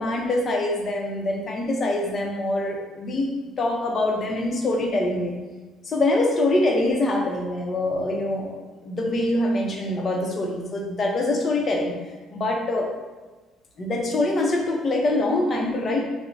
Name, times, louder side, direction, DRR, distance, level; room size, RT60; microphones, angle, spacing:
voice 1, 0.0-5.3 5.8-11.9 12.3-12.9 13.8-16.0, left 2 dB, 35° left, 1 dB, 0.7 m, -24 dB
5.5 x 2.1 x 2.7 m, 1.3 s
cardioid pair, 115°, 0 cm